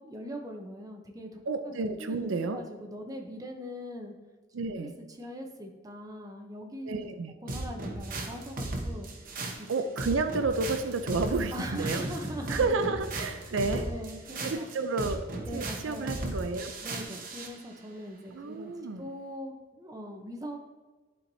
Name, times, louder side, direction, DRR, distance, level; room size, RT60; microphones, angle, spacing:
voice 1, 0.0-4.1 4.8-7.1 7.4-9.1 9.6-9.7 11.5-12.9 13.4-13.5 13.9-14.7 15.4-16.2 16.8-18.7 19.0-20.6, equal, 20° right, 2 dB, 0.7 m, -40 dB
voice 2, 1.5-2.6 4.5-4.9 6.8-7.3 9.7-12.0 12.5-13.9 14.4-15.2 15.5-16.7 18.3-19.1, right 3 dB, 85° right, 8 dB, 0.5 m, -31 dB
sound 1, 7.5-17.5, right 2 dB, 45° right, 0.9 m, -36 dB
11.0 x 4.5 x 2.7 m, 1.3 s
head